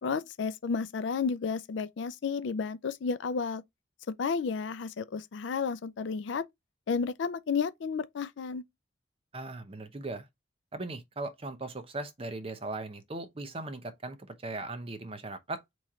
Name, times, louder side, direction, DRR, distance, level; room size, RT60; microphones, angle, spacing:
voice 1, 0.0-3.6 4.2-6.4 6.9-8.6, left 5 dB, 70° left, 0.4 m, -32 dB
voice 2, 9.3-10.3 10.7-15.6, right 2 dB, 30° right, 0.6 m, -38 dB
3.6 x 3.1 x 4.1 m
head